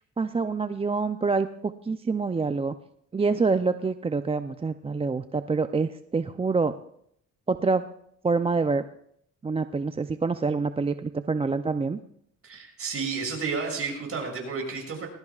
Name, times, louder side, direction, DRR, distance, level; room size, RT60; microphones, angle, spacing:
voice 1, 0.2-2.7 3.1-6.7 7.5-7.9 8.2-8.8 9.4-12.0, right 4 dB, 20° right, 10 dB, 0.5 m, -26 dB
voice 2, 12.4-15.1, right 4 dB, 50° right, 0 dB, 6.7 m, -31 dB
20.0 x 19.5 x 2.4 m, 0.70 s
cardioid pair, 90°, 30 cm